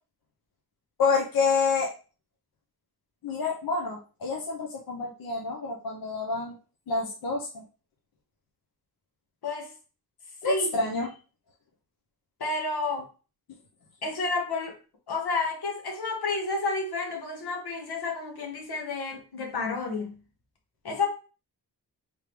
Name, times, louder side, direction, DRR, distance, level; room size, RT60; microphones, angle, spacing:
voice 1, 1.0-1.9 3.2-6.6 6.9-7.6 10.4-11.1, left 4 dB, 65° left, 0.8 m, -28 dB
voice 2, 10.4-10.8 12.4-13.0 14.0-14.8 15.1-20.2 20.8-21.1, left 3 dB, 90° left, 1.3 m, -30 dB
3.6 x 3.1 x 3.4 m
wide cardioid pair, 140°, 38 cm